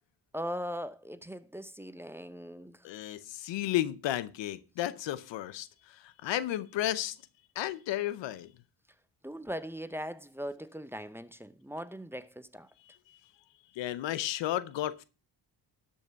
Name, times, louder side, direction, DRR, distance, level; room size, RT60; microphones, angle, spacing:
voice 1, 0.3-2.9 9.2-12.7, equal, 5° right, 0.8 m, -40 dB
voice 2, 2.8-7.2 7.6-8.5 12.9-13.2 13.7-15.0, left 13 dB, 90° left, 0.8 m, -33 dB
12.5 x 5.7 x 5.7 m
cardioid pair, 60°, 42 cm